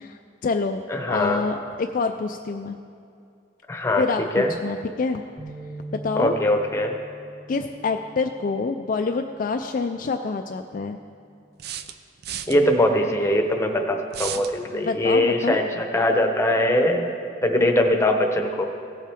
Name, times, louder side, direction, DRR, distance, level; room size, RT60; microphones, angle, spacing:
voice 1, 0.0-0.8 1.1-2.8 4.0-5.2 5.9-6.4 7.5-11.0 14.7-15.7, left 4 dB, 45° left, 5 dB, 0.3 m, -27 dB
voice 2, 0.9-1.4 3.7-4.0 4.3-4.5 6.1-7.0 12.5-17.1 17.4-18.7, left 1 dB, 15° left, 3 dB, 0.8 m, -21 dB
sound 1, 5.4-11.6, right 2 dB, 20° right, 1.6 m, -44 dB
sound 2, 9.5-9.6 11.6-12.6 14.1-14.5, right 9 dB, 55° right, 0.4 m, -33 dB
16.5 x 7.4 x 3.5 m, 2.5 s
head